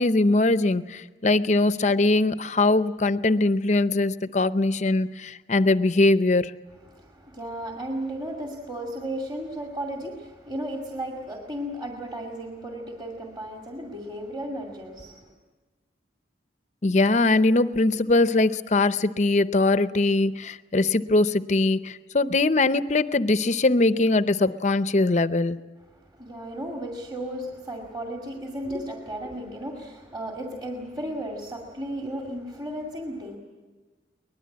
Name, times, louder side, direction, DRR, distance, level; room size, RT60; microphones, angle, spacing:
voice 1, 0.0-6.5 16.8-25.6, left 2 dB, 40° left, 13 dB, 0.6 m, -21 dB
voice 2, 6.8-15.3 25.9-33.4, right 1 dB, 25° right, 1 dB, 2.3 m, -34 dB
23.5 x 20.5 x 8.6 m, 1.3 s
head